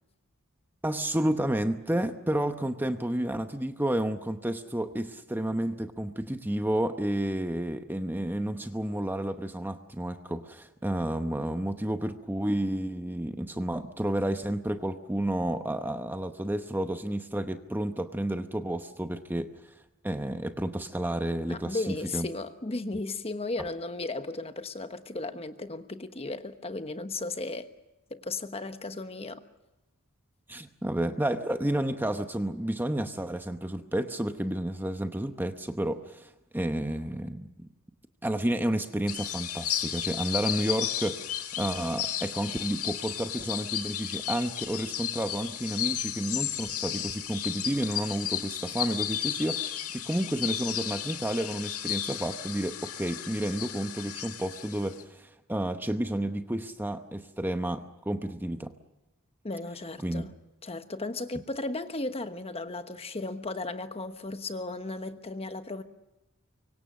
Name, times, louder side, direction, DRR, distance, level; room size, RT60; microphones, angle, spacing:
voice 1, 0.8-19.5 20.0-22.3 23.6-23.7 30.5-37.7 38.2-58.7 60.0-60.2, right 1 dB, 10° right, 0.9 m, -31 dB
voice 2, 21.5-27.7 28.1-29.4 59.4-60.3 60.6-65.8, left 2 dB, 25° left, 1.2 m, -35 dB
sound 1, 39.1-55.0, left 11 dB, 85° left, 2.0 m, -34 dB
25.0 x 24.0 x 6.4 m
head